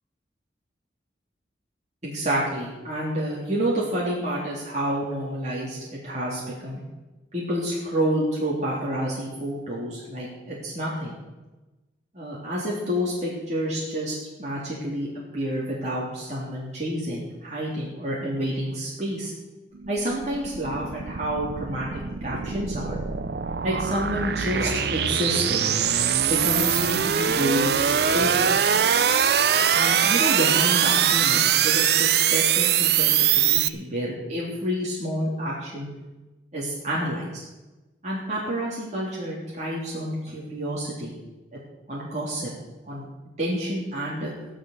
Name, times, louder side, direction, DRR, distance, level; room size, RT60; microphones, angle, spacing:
voice 1, 2.0-6.8 7.3-11.2 12.1-15.1 15.3-19.3 19.9-23.0 23.6-25.7 26.3-28.5 29.7-35.9 36.5-37.4 38.0-41.2 41.5-41.6 41.9-42.5 42.9-43.0 43.4-44.3, equal, 40° right, -6 dB, 3.3 m, -29 dB
sound 1, 19.7-33.7, right 8 dB, 60° right, 0.5 m, -22 dB
13.5 x 11.0 x 6.6 m, 1.1 s
head